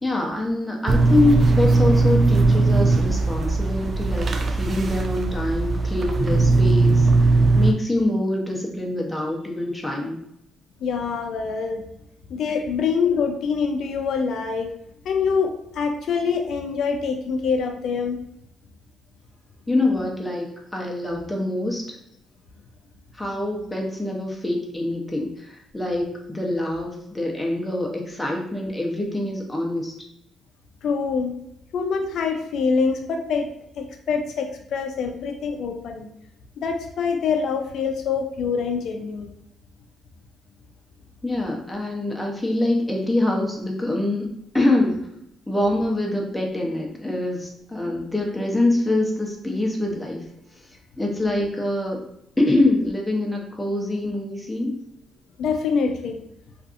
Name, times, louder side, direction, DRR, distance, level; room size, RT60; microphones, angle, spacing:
voice 1, 0.0-10.2 12.5-12.6 19.7-22.0 23.1-29.9 41.2-45.1 45.5-50.2 51.0-52.0 52.4-54.8, left 2 dB, 10° left, -1 dB, 0.7 m, -25 dB
sound 1, 0.9-7.7, right 3 dB, 40° right, 0.3 m, -19 dB
voice 2, 10.8-11.8 12.3-14.7 15.1-18.2 30.8-31.3 31.7-33.5 33.8-36.1 36.6-39.3 55.4-56.2, left 5 dB, 70° left, 4 dB, 0.3 m, -25 dB
2.6 x 2.4 x 2.5 m, 0.77 s
cardioid pair, 90°, 0 cm